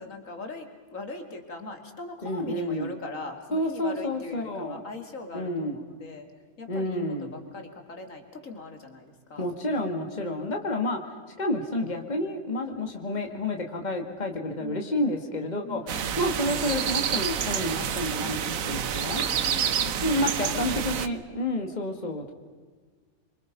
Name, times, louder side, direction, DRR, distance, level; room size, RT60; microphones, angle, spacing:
voice 1, 0.0-6.3 6.6-9.5 10.2-10.5 14.6-14.9 15.6-16.3 19.1-21.8, left 3 dB, 65° left, 4 dB, 2.8 m, -41 dB
voice 2, 2.2-2.9 3.5-4.9 5.3-5.8 6.7-7.3 9.4-11.1 11.4-19.3 20.0-22.3, left 1 dB, 30° left, 3 dB, 2.3 m, -30 dB
sound 1, 15.9-21.1, right 8 dB, 70° right, 1.3 m, -28 dB
26.5 x 25.5 x 5.4 m, 1.5 s
omnidirectional pair, 1.5 m